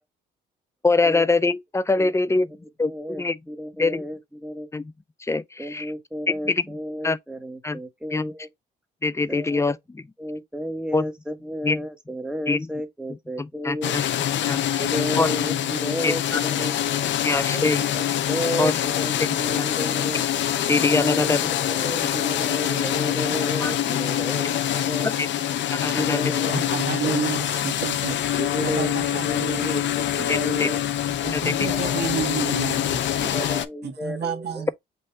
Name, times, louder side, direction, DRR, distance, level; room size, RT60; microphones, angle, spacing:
voice 1, 0.8-2.5 2.8-2.9 3.2-3.4 3.8-4.0 4.7-4.9 5.2-5.9 6.3-6.6 7.0-7.2 7.6-7.8 8.1-8.3 9.0-10.0 10.9-11.1 11.6-11.8 12.5-12.7 13.4-14.1 14.5-15.3 16.0-16.4 17.2-17.8 18.6-18.8 19.2-19.9 20.7-21.4 23.6-24.0 25.0-25.3 25.7-26.2 30.3-30.7 31.3-31.7, left 3 dB, 15° left, 0.4 m, -24 dB
voice 2, 2.8-4.7 5.6-8.5 9.3-9.6 10.2-13.9 14.8-16.7 17.5-20.2 20.9-25.1 25.9-27.5 28.4-30.8 31.6-32.0 33.2-34.6, equal, 5° right, 1.3 m, -32 dB
sound 1, 13.8-33.7, left 11 dB, 65° left, 0.6 m, -25 dB
voice 3, 26.5-28.3 28.6-29.7 30.3-30.4 31.2-34.7, right 8 dB, 55° right, 1.5 m, -31 dB
5.5 x 2.7 x 3.4 m
cardioid pair, 90°, 20 cm